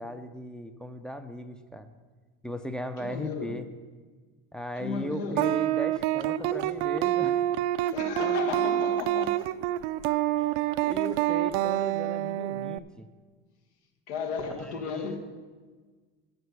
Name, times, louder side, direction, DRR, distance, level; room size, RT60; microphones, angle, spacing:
voice 1, 0.0-1.9 2.4-3.7 4.5-7.4 8.2-9.0 10.4-13.1 14.4-15.2, equal, ahead, 10 dB, 0.4 m, -38 dB
voice 2, 3.0-3.6 4.8-5.5 7.9-9.4 14.1-15.2, left 5 dB, 85° left, 5 dB, 1.4 m, -34 dB
sound 1, 5.4-12.8, right 14 dB, 80° right, 0.5 m, -27 dB
8.0 x 7.9 x 6.8 m, 1.5 s
supercardioid pair, 120°, 35 cm